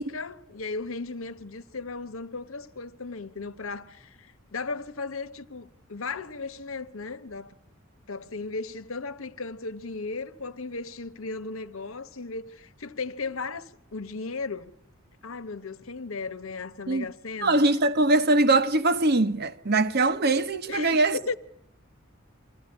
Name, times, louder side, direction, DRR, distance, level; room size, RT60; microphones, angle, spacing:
voice 1, 0.0-7.5 8.1-14.7 15.2-17.6 20.7-21.3, left 4 dB, 80° left, 1.1 m, -36 dB
voice 2, 17.4-21.2, right 2 dB, 50° right, 1.0 m, -22 dB
25.0 x 15.0 x 9.8 m
head